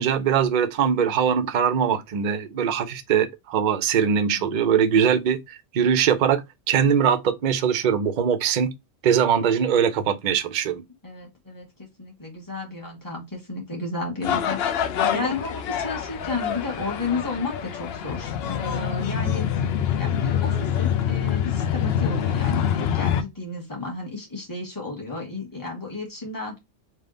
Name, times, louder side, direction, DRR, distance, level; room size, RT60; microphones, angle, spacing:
voice 1, 0.0-6.4 6.7-8.7 9.0-10.8, right 8 dB, 55° right, 0.5 m, -21 dB
voice 2, 4.3-4.7 11.0-19.5 20.0-26.6, left 3 dB, 15° left, 1.4 m, -33 dB
sound 1, 14.2-23.2, left 9 dB, 65° left, 0.7 m, -25 dB
3.5 x 2.7 x 3.7 m
omnidirectional pair, 1.3 m